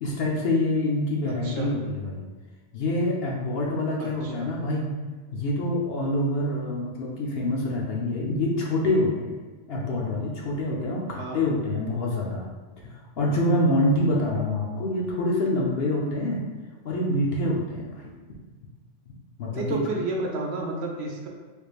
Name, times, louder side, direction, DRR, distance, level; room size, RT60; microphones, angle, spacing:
voice 1, 0.0-2.2 2.7-4.9 5.3-9.4 9.7-12.5 12.8-16.4 16.8-18.1 19.4-19.8, left 1 dB, 65° left, -2 dB, 0.7 m, -26 dB
voice 2, 4.0-4.5 11.1-11.4 19.5-21.3, right 2 dB, 65° right, 0 dB, 0.8 m, -31 dB
3.4 x 3.1 x 2.4 m, 1.3 s
omnidirectional pair, 1.3 m